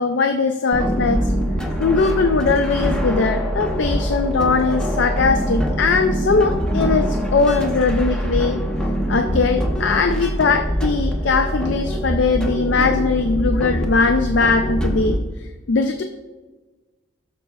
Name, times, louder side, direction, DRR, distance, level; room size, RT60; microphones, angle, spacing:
voice 1, 0.0-1.3 1.8-8.6 9.1-15.2 15.7-16.0, left 4 dB, 65° left, 6 dB, 0.4 m, -20 dB
sound 1, 0.7-15.2, equal, 5° left, 0.8 m, -23 dB
14.0 x 6.8 x 2.3 m, 1.3 s
head